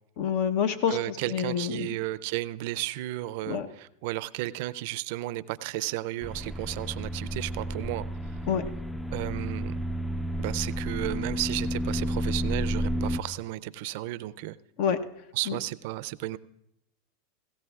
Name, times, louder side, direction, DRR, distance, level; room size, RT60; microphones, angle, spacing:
voice 1, 0.2-1.9 3.5-3.7 8.5-8.7 14.8-15.0 15.5-15.6, left 7 dB, 60° left, 10 dB, 0.8 m, -27 dB
voice 2, 0.9-8.1 9.1-9.8 10.4-14.6 15.3-16.4, right 17 dB, 65° right, 17 dB, 0.4 m, -33 dB
sound 1, 6.2-13.2, equal, 5° left, 0.4 m, -31 dB
17.5 x 16.0 x 2.4 m, 0.81 s
supercardioid pair, 120°, 0 cm